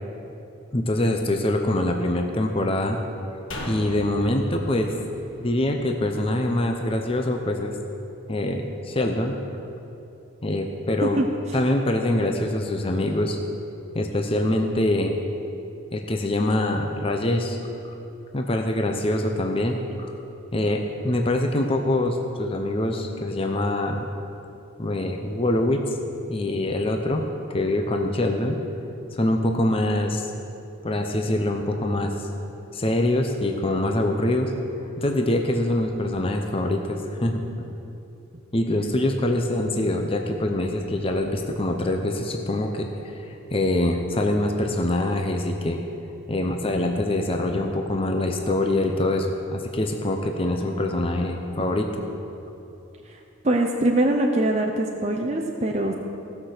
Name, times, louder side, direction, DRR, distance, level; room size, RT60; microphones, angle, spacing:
voice 1, 0.7-3.0 3.6-4.9 5.4-7.7 8.3-9.4 10.4-11.2 11.5-13.4 13.9-15.2 15.9-17.6 18.3-20.1 20.5-24.1 24.8-26.0 26.3-27.2 27.5-28.6 29.1-30.3 30.8-32.1 32.7-34.5 35.0-37.4 38.5-45.8 46.3-51.9, left 1 dB, 25° left, 4 dB, 0.7 m, -24 dB
sound 1, 3.5-6.8 7.1-7.2, equal, 75° left, 1.5 m, -38 dB
voice 2, 53.4-55.9, right 1 dB, 35° right, 1 dB, 0.6 m, -22 dB
16.0 x 5.9 x 6.6 m, 2.8 s
head